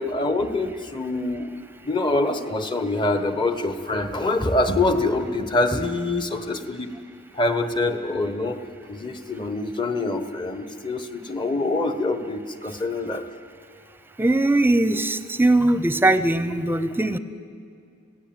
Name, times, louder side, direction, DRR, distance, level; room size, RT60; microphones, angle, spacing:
voice 1, 0.0-1.5 1.8-6.9 7.3-8.6 8.9-13.2, left 2 dB, 25° left, 8 dB, 1.3 m, -25 dB
voice 2, 14.2-17.2, right 2 dB, 10° right, 12 dB, 0.8 m, -20 dB
27.0 x 17.5 x 8.9 m, 2.3 s
head